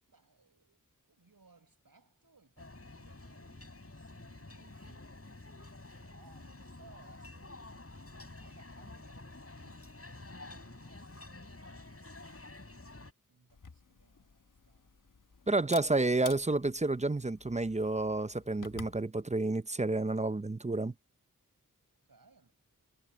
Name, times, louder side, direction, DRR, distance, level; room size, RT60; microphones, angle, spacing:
voice 1, 0.1-5.0 5.9-7.6 7.9-15.0 21.9-22.5, right 3 dB, 80° right, 7.5 m, -65 dB
sound 1, 2.6-13.1, left 2 dB, 40° left, 5.3 m, -50 dB
Camera, 13.5-19.0, left 4 dB, 65° left, 1.2 m, -51 dB
voice 2, 15.5-20.9, right 2 dB, 20° right, 0.6 m, -30 dB
wide cardioid pair, 55°, 34 cm